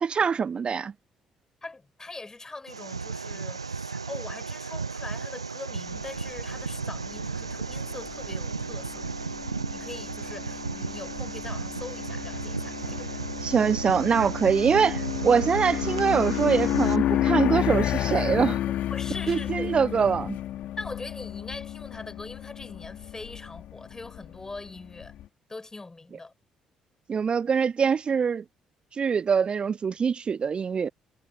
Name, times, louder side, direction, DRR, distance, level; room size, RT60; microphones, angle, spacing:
voice 1, 0.0-0.9 13.4-18.6 19.3-20.4 27.1-28.4 28.9-30.9, right 6 dB, 35° right, 0.6 m, -24 dB
voice 2, 1.6-9.1 9.7-13.2 18.7-19.9 20.8-25.2 25.5-26.3, left 3 dB, 20° left, 5.3 m, -42 dB
sound 1, 2.7-17.0, right 4 dB, 85° right, 0.9 m, -34 dB
sound 2, 5.9-25.2, left 12 dB, 55° left, 3.1 m, -32 dB
figure-of-eight pair, 45°, 3 cm